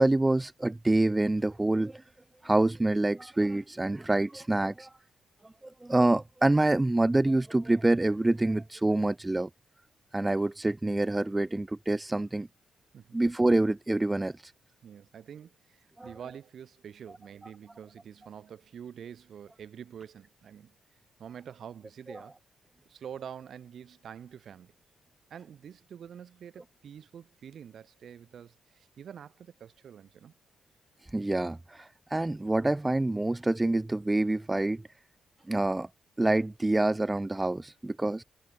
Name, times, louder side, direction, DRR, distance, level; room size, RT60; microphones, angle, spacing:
voice 1, 0.0-2.0 2.4-4.9 5.6-9.5 10.1-12.5 13.1-14.5 16.0-16.1 31.1-34.8 35.5-35.9 36.2-38.2, right 2 dB, 15° right, 1.3 m, -26 dB
voice 2, 12.9-13.2 14.8-20.7 21.2-22.4 22.9-24.7 25.3-30.3, right 8 dB, 60° right, 5.7 m, -46 dB
supercardioid pair, 50°, 0 cm